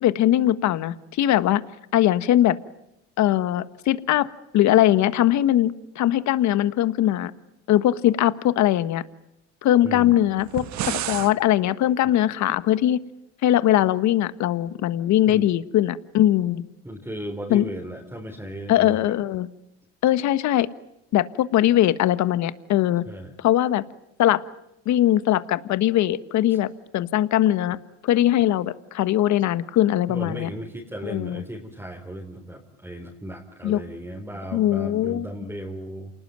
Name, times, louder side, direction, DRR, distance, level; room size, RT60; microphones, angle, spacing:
voice 1, 0.0-1.6 1.9-2.6 3.2-4.3 4.5-7.3 7.7-9.0 9.6-13.0 13.4-16.6 17.5-17.6 18.7-19.5 20.0-20.7 21.1-23.0 23.4-23.8 24.2-24.4 24.8-27.8 28.0-30.5 31.0-31.4 33.6-33.8 34.5-35.2, left 13 dB, 55° left, 14 dB, 1.4 m, -21 dB
voice 2, 9.8-10.2 12.0-12.2 15.3-15.5 16.8-19.2 23.0-23.3 26.5-26.6 30.1-36.1, right 1 dB, 5° right, 0 dB, 4.3 m, -36 dB
sound 1, 10.4-11.3, right 12 dB, 55° right, 1.6 m, -29 dB
28.5 x 19.5 x 9.4 m, 0.85 s
supercardioid pair, 80°, 33 cm